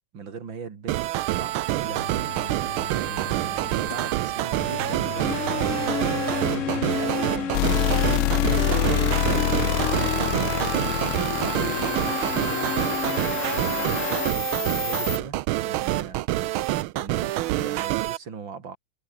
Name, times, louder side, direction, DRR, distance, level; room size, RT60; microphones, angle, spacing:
voice 1, 0.1-1.0 1.4-2.1 2.9-7.6 8.6-18.8, right 6 dB, 65° right, 3.1 m, -40 dB
sound 1, 0.9-18.2, right 15 dB, 85° right, 1.5 m, -27 dB
sound 2, 1.8-14.3, left 8 dB, 45° left, 1.2 m, -31 dB
sound 3, 7.5-15.2, left 15 dB, 80° left, 1.5 m, -27 dB
omnidirectional pair, 2.3 m